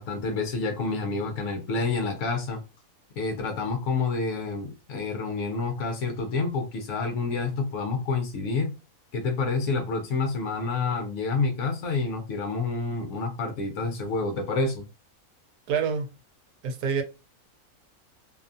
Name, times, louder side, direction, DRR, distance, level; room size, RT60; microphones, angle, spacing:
voice 1, 0.0-2.6 3.2-8.7 9.1-14.8, left 4 dB, 65° left, 4 dB, 0.8 m, -28 dB
voice 2, 15.7-16.1 16.6-17.0, right 6 dB, 85° right, 5 dB, 1.1 m, -26 dB
2.7 x 2.2 x 2.5 m, 0.28 s
omnidirectional pair, 1.6 m